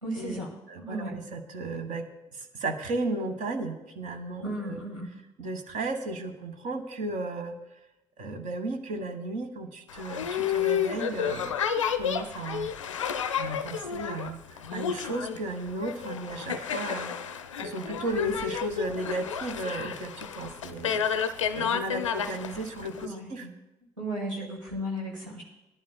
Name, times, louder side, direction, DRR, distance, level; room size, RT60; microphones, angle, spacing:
voice 1, 0.0-0.5 0.8-1.1 4.4-5.1 23.0-23.5 24.0-25.4, equal, 90° right, -3 dB, 1.6 m, -35 dB
voice 2, 0.7-2.1 2.3-4.8 5.4-7.5 8.2-11.6 12.0-12.7 13.4-17.1 17.6-21.0 21.5-23.5, right 2 dB, 55° right, 6 dB, 1.4 m, -34 dB
Boat Water vehicle, 9.9-23.1, left 8 dB, 80° left, 0.4 m, -31 dB
18.0 x 11.0 x 2.2 m, 0.95 s
figure-of-eight pair, 45°, 16 cm